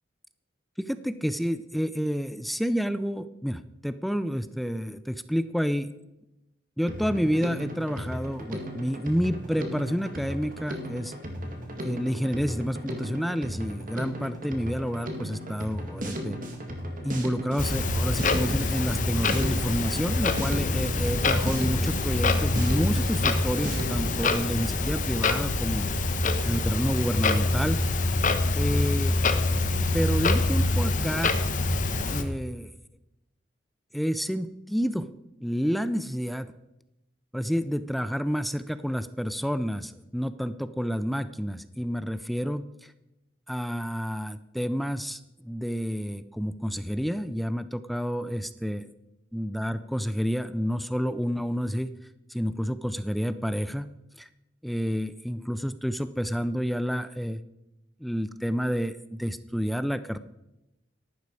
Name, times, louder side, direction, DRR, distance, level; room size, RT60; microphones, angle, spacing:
voice 1, 0.8-5.9 6.8-11.1 11.8-16.4 17.0-25.9 26.4-27.8 28.5-29.1 29.9-31.3 32.1-32.7 33.9-35.1 35.4-36.5 37.3-42.9 43.5-48.9 49.3-51.9 52.3-53.9 54.2-54.3 54.6-57.4 58.0-60.2, equal, ahead, 13 dB, 0.5 m, -29 dB
Drum kit, 6.9-24.3, equal, 45° right, 2.4 m, -36 dB
Clock, 17.6-32.2, left 2 dB, 40° left, 1.1 m, -25 dB
13.5 x 12.0 x 4.8 m, 0.89 s
head